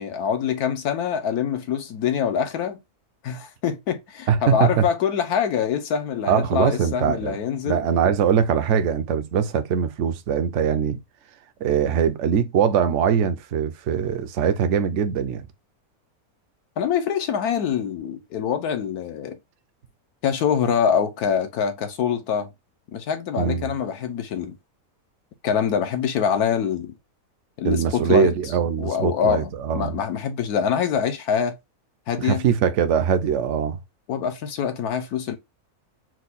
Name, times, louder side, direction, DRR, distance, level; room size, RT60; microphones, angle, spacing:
voice 1, 0.0-2.8 3.2-7.8 16.8-19.4 20.2-22.5 22.9-24.5 25.4-26.9 27.6-28.3 28.8-31.6 32.1-32.4 34.1-35.4, left 7 dB, 80° left, 1.3 m, -24 dB
voice 2, 4.3-4.9 6.3-7.4 7.7-11.0 11.6-15.5 23.4-23.7 27.6-29.9 32.2-33.8, right 7 dB, 65° right, 0.8 m, -22 dB
4.5 x 2.3 x 4.0 m
omnidirectional pair, 1.6 m